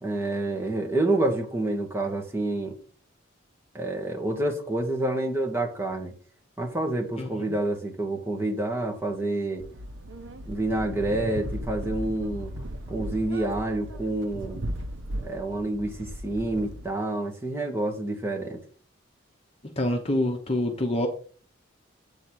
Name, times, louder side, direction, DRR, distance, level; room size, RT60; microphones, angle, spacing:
voice 1, 0.0-2.7 3.7-6.1 6.6-9.6 10.5-12.5 12.9-14.6 15.2-18.6, right 2 dB, 10° right, 0 dB, 1.5 m, -28 dB
sound 1, 9.6-16.9, equal, 65° right, 0.9 m, -36 dB
voice 2, 19.8-21.1, left 1 dB, 30° left, 3 dB, 1.0 m, -26 dB
8.5 x 4.1 x 6.1 m, 0.41 s
head